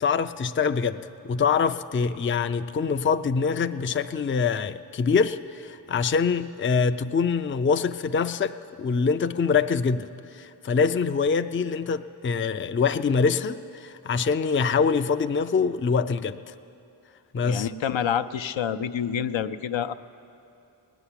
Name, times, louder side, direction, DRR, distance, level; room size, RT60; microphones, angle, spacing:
voice 1, 0.0-10.1 10.3-16.5 17.3-17.7, left 5 dB, 25° left, 10 dB, 0.4 m, -24 dB
voice 2, 17.4-19.9, left 8 dB, 70° left, 11 dB, 0.6 m, -27 dB
18.0 x 7.1 x 10.0 m, 2.7 s
cardioid pair, 50°, 47 cm